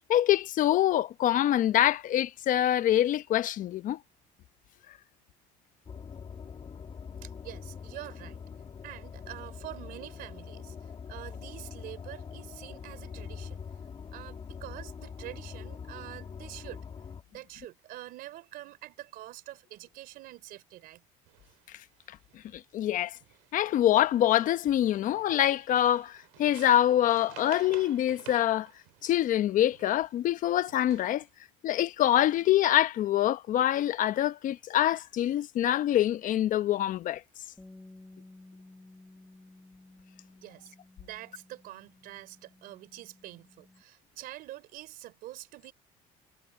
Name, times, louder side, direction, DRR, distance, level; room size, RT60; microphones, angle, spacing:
voice 1, 0.1-4.0 22.5-23.2 23.5-28.7 29.0-31.2 31.6-37.2, left 12 dB, 55° left, 1.0 m, -25 dB
sound 1, 5.9-17.2, left 6 dB, 35° left, 2.5 m, -43 dB
voice 2, 7.2-8.4 8.8-13.6 14.1-16.9 17.3-21.0 40.4-45.7, right 15 dB, 70° right, 3.4 m, -46 dB
sound 2, 21.3-21.6 22.0-22.6 23.2-23.7 24.0-30.2 30.7-31.3, right 25 dB, 90° right, 2.3 m, -52 dB
Bass guitar, 37.6-43.8, left 2 dB, 10° left, 2.4 m, -55 dB
supercardioid pair, 100°, 16 cm